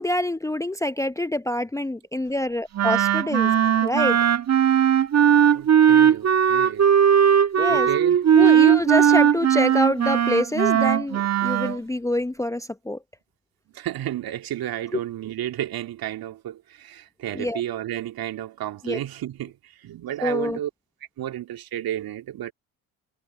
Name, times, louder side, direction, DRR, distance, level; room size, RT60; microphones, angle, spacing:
voice 1, 0.0-3.5 3.8-4.2 7.6-7.9 8.3-13.0 17.4-17.6 18.8-19.0 20.2-20.6, left 1 dB, 5° left, 0.8 m, -26 dB
Wind instrument woodwind instrument, 2.7-11.8, right 9 dB, 35° right, 1.4 m, -18 dB
voice 2, 5.5-6.9 7.7-8.2 13.7-20.7 21.2-22.5, right 12 dB, 55° right, 2.6 m, -32 dB
hypercardioid pair, 60°, 44 cm